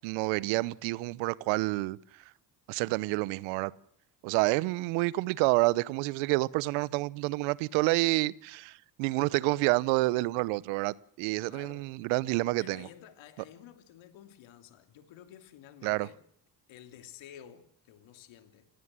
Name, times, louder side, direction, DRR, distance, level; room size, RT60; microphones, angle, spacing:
voice 1, 0.0-2.0 2.7-3.7 4.2-12.9 15.8-16.1, right 22 dB, 75° right, 0.9 m, -28 dB
voice 2, 11.5-12.0 12.6-16.2 16.7-18.7, left 10 dB, 70° left, 2.9 m, -52 dB
28.5 x 17.5 x 7.6 m
hypercardioid pair, 50°, 47 cm